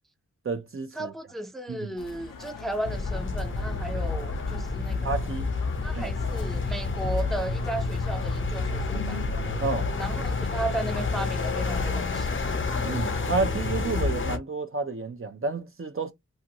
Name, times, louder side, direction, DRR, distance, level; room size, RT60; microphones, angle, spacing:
voice 1, 0.4-1.1 1.7-1.9 5.0-5.5 6.0-6.2 9.6-9.9 12.8-16.1, right 4 dB, 40° right, 0.6 m, -30 dB
voice 2, 1.0-5.1 5.8-9.2 10.0-12.4, right 2 dB, ahead, 0.6 m, -35 dB
sound 1, 2.0-13.6, left 5 dB, 80° left, 0.7 m, -42 dB
sound 2, 2.8-14.4, left 3 dB, 40° left, 0.7 m, -29 dB
2.6 x 2.5 x 2.9 m
cardioid pair, 45°, 33 cm